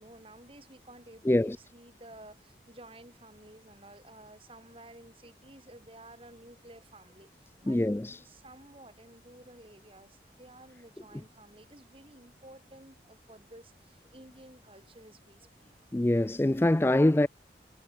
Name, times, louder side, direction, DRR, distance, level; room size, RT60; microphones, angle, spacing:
voice 1, 0.0-7.8 8.2-15.7, right 1 dB, 30° right, 5.8 m, -53 dB
voice 2, 1.3-1.6 7.7-8.2 15.9-17.3, left 1 dB, 15° left, 0.3 m, -24 dB
head